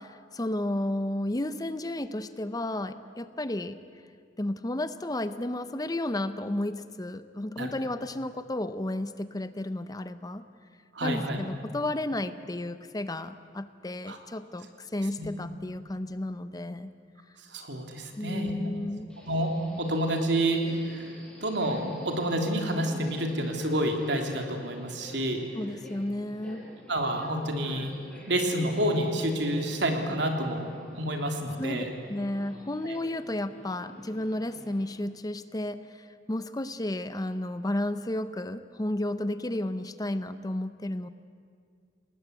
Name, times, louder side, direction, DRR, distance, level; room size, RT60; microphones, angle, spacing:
voice 1, 0.0-3.8 4.4-10.4 11.0-16.9 18.2-19.1 25.5-26.7 31.6-41.1, left 1 dB, 20° left, 12 dB, 0.7 m, -32 dB
voice 2, 10.9-11.4 14.1-14.2 15.2-15.3 17.5-18.5 19.2-21.1 21.4-25.4 26.9-27.9 28.3-30.7 31.0-31.9, right 1 dB, 70° right, 3 dB, 3.4 m, -28 dB
Subway metro underground, 19.1-34.9, equal, 5° left, 5.8 m, -49 dB
29.0 x 19.5 x 8.3 m, 2.2 s
head